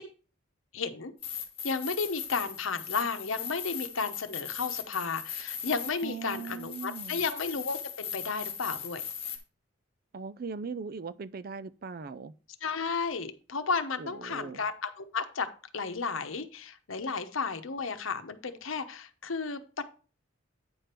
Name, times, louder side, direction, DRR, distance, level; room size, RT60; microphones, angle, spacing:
voice 1, 0.7-1.1 1.6-9.0 12.6-15.5 15.7-19.8, left 4 dB, 80° left, 0.9 m, -33 dB
sound 1, 1.2-9.4, left 8 dB, 30° left, 1.4 m, -39 dB
voice 2, 6.0-7.3 10.1-12.3 14.0-14.6, right 5 dB, 45° right, 0.4 m, -39 dB
9.0 x 5.1 x 4.4 m
head